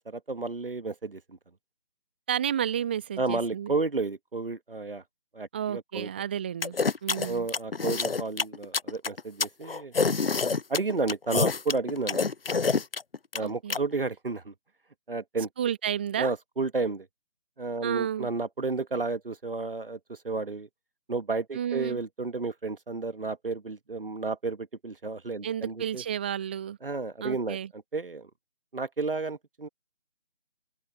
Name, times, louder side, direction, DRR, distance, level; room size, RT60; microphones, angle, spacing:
voice 1, 0.0-1.4 3.2-5.0 5.3-6.1 7.2-9.9 10.7-12.2 13.3-14.5 15.1-15.5 16.2-17.1 17.6-20.7 21.1-26.0 26.8-28.3 28.7-29.7, right 3 dB, 55° right, 1.7 m, -32 dB
voice 2, 2.3-3.7 5.5-7.5 13.4-13.8 15.6-16.3 17.8-18.3 21.5-22.0 25.4-26.8 27.2-27.7, right 9 dB, 10° right, 1.4 m, -31 dB
sound 1, 6.6-13.8, left 4 dB, 55° left, 0.7 m, -27 dB
open air
figure-of-eight pair, 160°, 34 cm